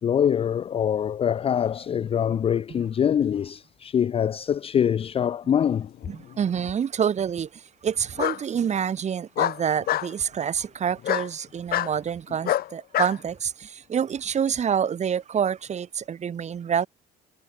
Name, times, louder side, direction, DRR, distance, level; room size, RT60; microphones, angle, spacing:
voice 1, 0.0-5.9, left 8 dB, 35° left, 0.5 m, -24 dB
Bark, 6.0-6.7 8.2-8.4 9.4-10.1 11.0-11.3 11.7-11.9 12.4-13.2, left 13 dB, 65° left, 1.7 m, -25 dB
voice 2, 6.1-16.9, right 8 dB, 40° right, 2.7 m, -27 dB
cardioid pair, 110°, 17 cm